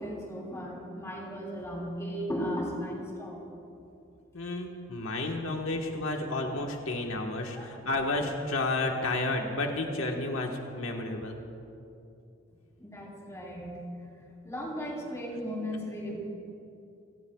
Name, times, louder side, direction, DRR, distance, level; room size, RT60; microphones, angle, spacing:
voice 1, 0.0-3.5 4.4-4.7 7.4-7.8 8.8-9.0 12.8-13.8 14.4-16.2, equal, 15° left, -3 dB, 3.3 m, -36 dB
voice 2, 4.3-11.4, left 2 dB, 80° left, 1 dB, 1.3 m, -31 dB
29.0 x 17.5 x 2.3 m, 2.6 s
head